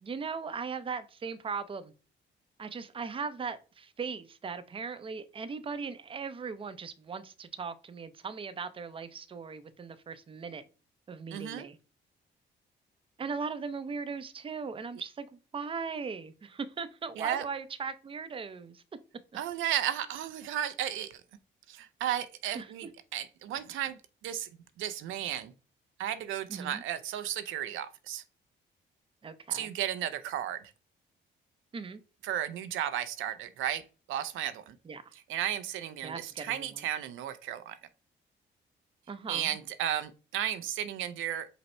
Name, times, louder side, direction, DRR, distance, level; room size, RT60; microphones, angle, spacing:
voice 1, 0.0-1.9 2.6-10.6 11.1-11.8 13.2-15.3 15.5-18.8 22.5-22.7 26.5-26.8 29.2-29.7 31.7-32.0 34.9-35.1 36.0-36.7 39.1-39.6, right 5 dB, 25° right, 0.5 m, -38 dB
voice 2, 11.3-11.7 17.2-17.4 19.3-21.2 21.7-24.5 24.8-25.5 26.0-28.2 29.5-30.6 32.2-33.8 34.1-34.8 35.1-37.8 39.3-41.5, right 11 dB, 85° right, 0.5 m, -34 dB
5.4 x 2.0 x 4.3 m
cardioid pair, 90°, 20 cm